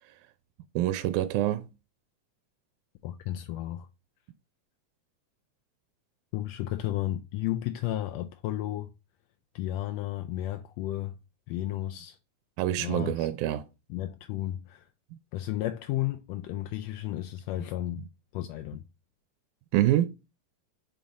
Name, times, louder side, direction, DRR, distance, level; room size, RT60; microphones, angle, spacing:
voice 1, 0.8-1.7 12.6-13.6 19.7-20.2, right 13 dB, 90° right, 2.0 m, -26 dB
voice 2, 3.0-3.9 6.3-8.9 9.5-11.1 11.5-12.2 12.8-13.3 13.9-14.9 15.3-18.0 18.3-18.8, left 13 dB, 80° left, 1.5 m, -33 dB
7.0 x 3.6 x 4.0 m
omnidirectional pair, 3.4 m